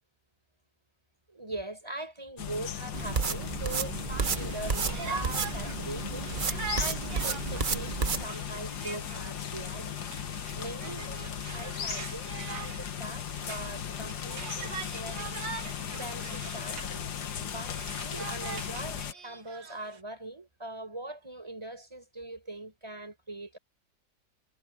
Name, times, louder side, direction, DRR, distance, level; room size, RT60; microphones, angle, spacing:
voice 1, 1.3-10.1 10.5-15.2 15.9-17.1 17.5-23.6, right 2 dB, 15° right, 5.1 m, -42 dB
sound 1, 2.4-19.1, left 8 dB, 65° left, 1.7 m, -37 dB
sound 2, 2.9-8.2, right 5 dB, 35° right, 0.8 m, -32 dB
Conversation, 4.2-17.0 17.3-20.0, right 6 dB, 80° right, 2.4 m, -43 dB
omnidirectional pair, 2.0 m